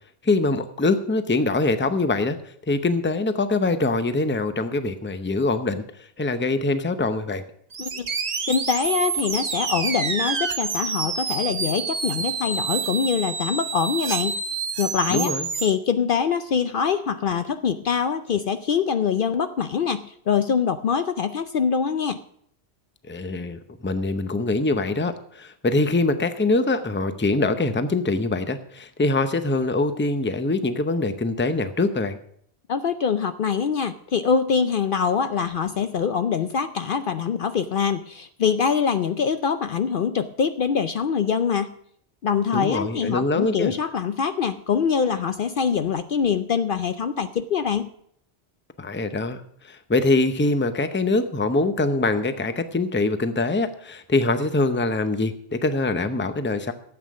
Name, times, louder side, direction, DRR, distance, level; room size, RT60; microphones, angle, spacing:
voice 1, 0.2-2.4 2.7-5.8 6.2-7.4 15.1-15.5 23.1-32.2 42.5-43.7 48.8-56.7, left 2 dB, 10° left, 10 dB, 0.6 m, -23 dB
sound 1, 7.7-15.7, right 5 dB, 40° right, 0.9 m, -28 dB
voice 2, 8.5-14.4 14.8-15.3 15.6-22.2 32.7-41.7 42.2-47.9, left 6 dB, 60° left, 10 dB, 0.7 m, -24 dB
13.0 x 8.2 x 6.3 m, 0.67 s
omnidirectional pair, 1.1 m